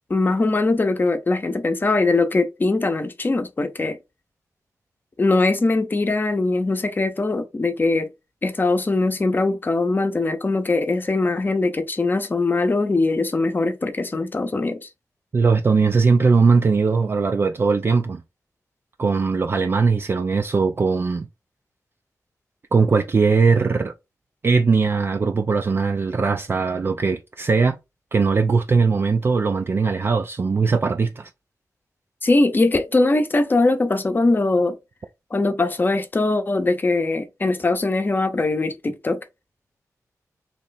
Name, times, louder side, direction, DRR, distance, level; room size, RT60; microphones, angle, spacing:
voice 1, 0.1-4.0 5.2-8.1 8.4-14.9 32.2-34.8 35.3-39.2, left 2 dB, 30° left, 0.7 m, -21 dB
voice 2, 15.3-18.2 19.0-21.3 22.7-23.9 24.4-27.8 28.1-31.3, right 4 dB, 40° right, 0.4 m, -19 dB
3.2 x 3.0 x 4.0 m
wide cardioid pair, 135°, 6 cm